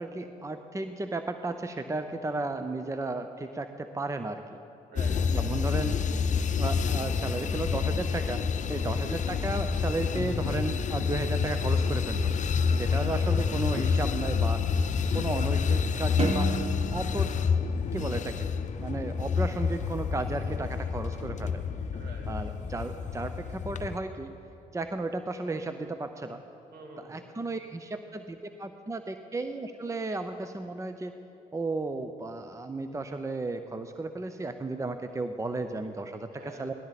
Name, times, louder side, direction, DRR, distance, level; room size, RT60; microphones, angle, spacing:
voice 1, 0.0-4.4 5.3-6.0 6.6-12.3 12.8-14.7 15.1-16.5 16.9-17.4 17.9-18.5 18.8-21.6 22.3-24.3 24.7-26.4 27.1-31.2 31.5-36.7, right 2 dB, 20° right, 8 dB, 0.7 m, -34 dB
voice 2, 4.9-5.7 8.7-9.0 12.9-13.2 21.9-22.3 26.7-27.2 36.3-36.7, right 3 dB, 65° right, 2 dB, 2.3 m, -47 dB
sound 1, 5.0-24.0, left 6 dB, 45° left, 0.7 m, -28 dB
sound 2, 16.2-18.7, right 3 dB, 40° right, 1.1 m, -34 dB
18.0 x 12.0 x 4.1 m, 2.8 s
supercardioid pair, 55°, 17 cm